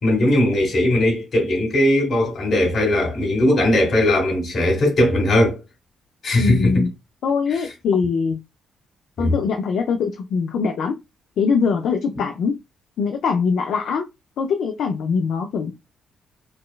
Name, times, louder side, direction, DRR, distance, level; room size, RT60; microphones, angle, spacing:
voice 1, 0.0-5.6 6.2-6.9 7.5-7.6 9.2-9.3, left 1 dB, 55° left, 1.8 m, -19 dB
voice 2, 6.4-6.9 7.2-8.4 9.2-10.9 11.4-12.6 13.0-14.1 14.4-15.7, left 5 dB, 70° left, 0.4 m, -22 dB
4.0 x 2.2 x 2.2 m
cardioid pair, 90°, 0 cm